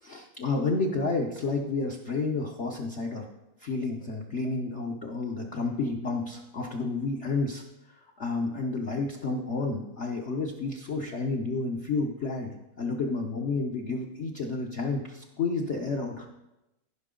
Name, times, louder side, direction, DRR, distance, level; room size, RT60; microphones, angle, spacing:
voice 1, 0.0-3.3 3.6-7.6 7.9-16.3, left 3 dB, 85° left, 1 dB, 0.6 m, -30 dB
15.0 x 5.7 x 3.7 m, 0.95 s
omnidirectional pair, 2.4 m